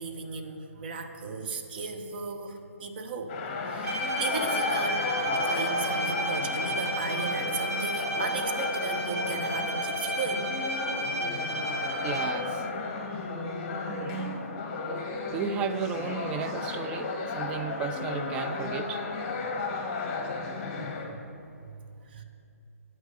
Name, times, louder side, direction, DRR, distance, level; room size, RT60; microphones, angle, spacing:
voice 1, 0.0-3.4 3.7-5.1 5.4-10.4 22.1-22.2, right 4 dB, 40° right, 5 dB, 1.0 m, -36 dB
sound 1, 3.3-21.1, left 4 dB, 30° left, 1.3 m, -34 dB
Bowed string instrument, 3.8-12.6, right 1 dB, 70° right, 2.0 m, -32 dB
voice 2, 12.0-12.7 13.9-14.4 15.3-19.0, right 5 dB, 10° right, 9 dB, 0.3 m, -34 dB
9.0 x 6.2 x 6.7 m, 2.6 s
figure-of-eight pair, 135°, 8 cm